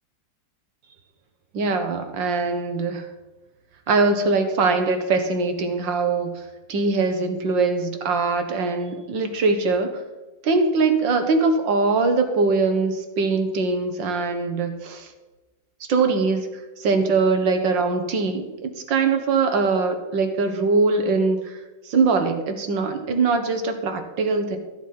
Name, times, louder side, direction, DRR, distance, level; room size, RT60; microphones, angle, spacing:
voice 1, 1.5-3.1 3.9-6.4 6.7-9.9 10.4-15.1 15.9-16.4 16.8-21.6 21.9-24.6, right 4 dB, 85° right, 6 dB, 2.1 m, -22 dB
13.5 x 7.1 x 5.7 m, 1.1 s
omnidirectional pair, 1.9 m